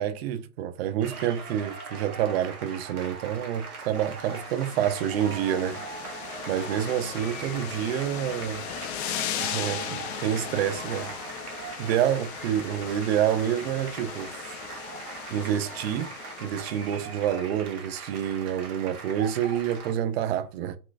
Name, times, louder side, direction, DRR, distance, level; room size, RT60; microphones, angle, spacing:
voice 1, 0.0-5.8 6.5-8.6 9.4-11.1 11.8-14.4 15.3-16.1 16.4-20.8, right 10 dB, 45° right, 0.5 m, -28 dB
sound 1, 1.0-19.9, right 4 dB, 85° right, 1.0 m, -41 dB
sound 2, 4.0-17.2, left 9 dB, 50° left, 0.6 m, -38 dB
4.2 x 2.2 x 2.4 m
hypercardioid pair, 115°, 43 cm